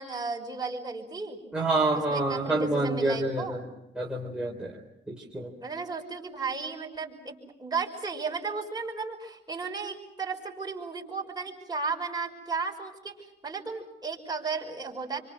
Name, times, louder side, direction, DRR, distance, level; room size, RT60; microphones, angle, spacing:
voice 1, 0.0-1.4 1.9-3.7 5.6-15.2, right 4 dB, 20° right, 1 dB, 5.8 m, -34 dB
voice 2, 1.5-3.7 4.0-4.7 5.1-5.5, right 2 dB, 5° right, -3 dB, 3.9 m, -27 dB
27.5 x 25.5 x 6.2 m, 0.87 s
cardioid pair, 90°, 20 cm